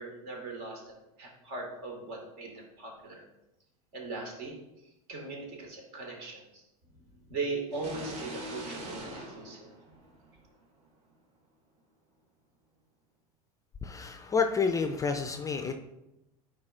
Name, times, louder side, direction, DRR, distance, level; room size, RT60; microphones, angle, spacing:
voice 1, 0.0-3.2 3.9-4.6 5.1-6.6 7.3-9.7, right 3 dB, 60° right, 0 dB, 2.1 m, -39 dB
sound 1, 7.7-10.5, right 1 dB, 35° right, 1.5 m, -42 dB
voice 2, 13.8-15.7, left 5 dB, 15° left, 7 dB, 0.5 m, -29 dB
9.5 x 4.4 x 2.5 m, 0.89 s
hypercardioid pair, 80°, 19 cm